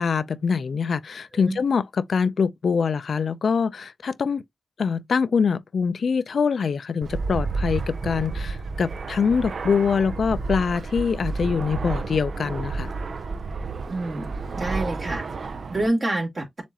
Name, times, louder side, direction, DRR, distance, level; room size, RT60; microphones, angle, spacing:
voice 1, 0.0-4.4 4.8-12.9, left 6 dB, 80° left, 0.4 m, -24 dB
Fixed-wing aircraft airplane, 7.0-15.9, right 4 dB, 75° right, 0.4 m, -31 dB
voice 2, 13.9-14.3 14.5-16.6, right 2 dB, 55° right, 2.4 m, -28 dB
7.2 x 2.5 x 2.8 m
cardioid pair, 55°, 0 cm